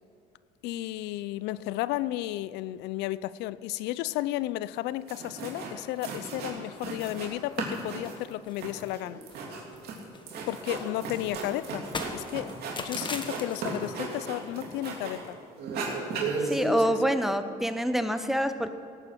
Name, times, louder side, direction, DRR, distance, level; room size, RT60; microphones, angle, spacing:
voice 1, 0.6-9.2 10.5-11.8 12.1-15.4 16.6-17.0, left 15 dB, 90° left, 17 dB, 0.4 m, -33 dB
sound 1, 4.8-4.9 5.1-5.7 6.0-7.3 7.6-15.3 15.6-16.9, right 3 dB, 70° right, 3.1 m, -35 dB
sound 2, 5.4-6.0 6.3-6.4 6.7-6.9 7.2-7.7 8.0-9.5 9.7-14.1, left 3 dB, 30° left, 1.4 m, -41 dB
voice 2, 16.5-18.7, equal, ahead, 9 dB, 0.9 m, -26 dB
17.5 x 9.0 x 6.0 m, 2.4 s
cardioid pair, 110°, 17 cm